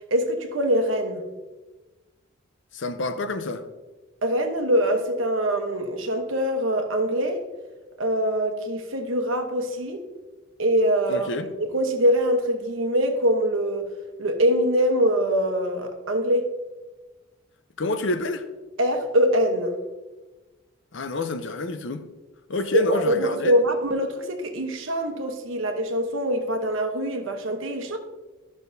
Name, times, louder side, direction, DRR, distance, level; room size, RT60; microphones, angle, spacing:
voice 1, 0.1-1.2 4.2-7.4 8.0-10.0 10.6-13.9 14.2-16.5 18.8-19.8 22.7-28.0, equal, 70° right, 1.0 m, -23 dB
voice 2, 2.7-3.6 11.1-11.5 17.8-18.4 20.9-22.0 22.5-23.5, left 2 dB, 60° left, 0.6 m, -28 dB
12.5 x 6.3 x 2.7 m
head